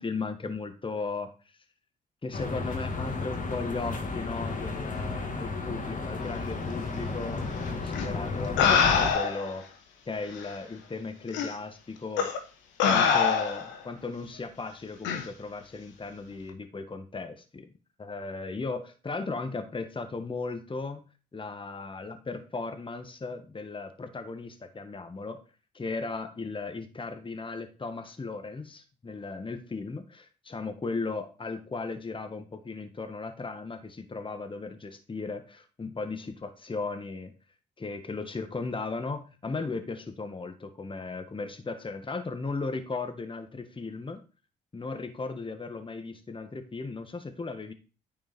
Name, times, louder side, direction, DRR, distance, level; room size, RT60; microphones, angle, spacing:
voice 1, 0.0-1.3 2.2-9.7 10.1-12.3 12.9-17.7 18.0-21.1 21.3-25.4 25.7-37.3 37.8-44.2 44.7-47.7, left 3 dB, 25° left, 7 dB, 1.4 m, -36 dB
sound 1, 2.3-9.1, left 3 dB, 45° left, 2.1 m, -33 dB
sound 2, 7.9-8.0 8.6-9.5 10.4-10.5 11.3-11.5 12.2-12.4 12.8-13.8 15.0-15.2, left 6 dB, 85° left, 1.2 m, -24 dB
9.5 x 4.6 x 4.4 m, 0.34 s
supercardioid pair, 55°, 19 cm